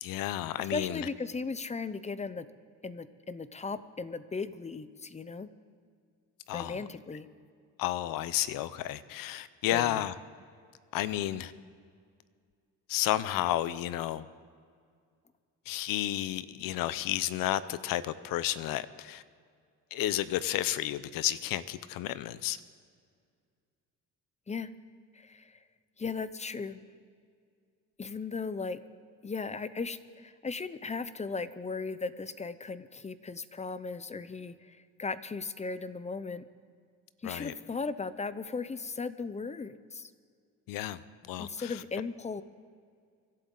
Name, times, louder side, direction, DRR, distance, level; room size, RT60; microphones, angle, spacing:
voice 1, 0.0-1.1 6.5-6.8 7.8-10.1 10.9-11.5 12.9-14.3 15.7-19.2 19.9-22.6 37.2-37.5 40.7-41.0 41.3-41.7, left 13 dB, 90° left, 16 dB, 0.7 m, -32 dB
voice 2, 0.6-2.5 2.8-5.5 6.5-7.3 9.7-10.1 24.5-24.7 25.1-25.6 26.0-26.8 28.0-28.8 29.2-36.4 37.2-40.1 41.4-42.4, left 4 dB, 20° left, 14 dB, 0.6 m, -37 dB
25.0 x 12.0 x 3.9 m, 2.1 s
cardioid pair, 100°, 33 cm